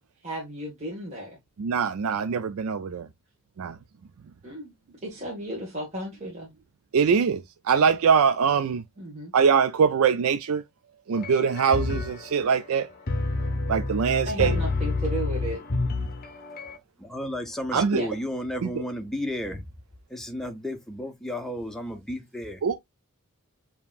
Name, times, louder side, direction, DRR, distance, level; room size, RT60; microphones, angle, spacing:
voice 1, 0.2-1.4 4.4-4.7 5.0-6.5 9.0-9.3 14.2-15.6 17.7-18.1, right 1 dB, 30° right, 1.5 m, -34 dB
voice 2, 1.6-3.1 3.6-3.8 6.9-8.8 9.3-10.6 11.1-12.9 13.7-14.6 17.7-18.0 18.6-18.7 22.6-22.7, right 6 dB, 70° right, 0.4 m, -23 dB
sound 1, 11.1-16.8, left 3 dB, 40° left, 0.7 m, -29 dB
voice 3, 17.0-19.6 20.1-22.6, left 1 dB, ahead, 0.8 m, -33 dB
7.0 x 2.9 x 2.4 m
head